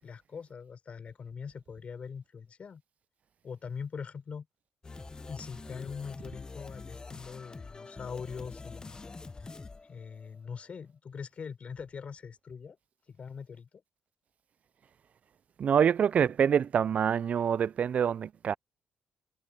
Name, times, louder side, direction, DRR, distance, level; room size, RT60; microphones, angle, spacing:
voice 1, 0.0-2.8 3.4-4.5 5.3-9.0 9.8-12.8 13.1-13.7, left 6 dB, 50° left, 4.2 m, -42 dB
sound 1, 4.8-10.6, left 3 dB, 30° left, 1.0 m, -45 dB
voice 2, 15.6-18.5, right 8 dB, 55° right, 0.3 m, -26 dB
cardioid pair, 70°, 3 cm